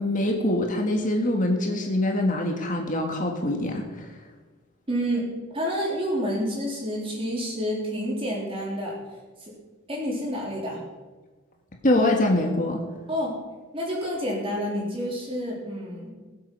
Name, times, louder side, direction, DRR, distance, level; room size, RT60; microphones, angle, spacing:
voice 1, 0.0-4.1 11.8-12.8, left 1 dB, 40° left, 2 dB, 1.6 m, -24 dB
voice 2, 4.9-5.2 5.5-9.0 9.4-9.5 9.9-10.8 12.0-12.1 13.1-13.3 13.7-16.1, equal, 25° right, -3 dB, 3.5 m, -29 dB
20.5 x 8.0 x 5.4 m, 1.3 s
head